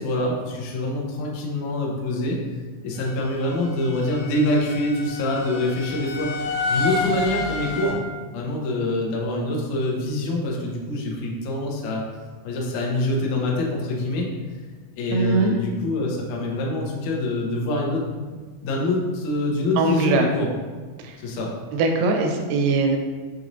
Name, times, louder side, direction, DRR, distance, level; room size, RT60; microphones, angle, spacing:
voice 1, 0.0-2.4 2.8-6.3 6.7-8.0 8.3-12.0 12.4-14.3 15.0-18.0 18.6-20.5 21.2-21.5, left 2 dB, 90° left, -2 dB, 1.6 m, -25 dB
sound 1, 3.0-7.9, left 2 dB, 65° left, 2.1 m, -30 dB
voice 2, 15.1-15.6 19.8-20.3 21.0-21.2 21.7-23.0, right 3 dB, 85° right, 3 dB, 2.5 m, -21 dB
6.7 x 3.0 x 2.6 m, 1.4 s
omnidirectional pair, 4.5 m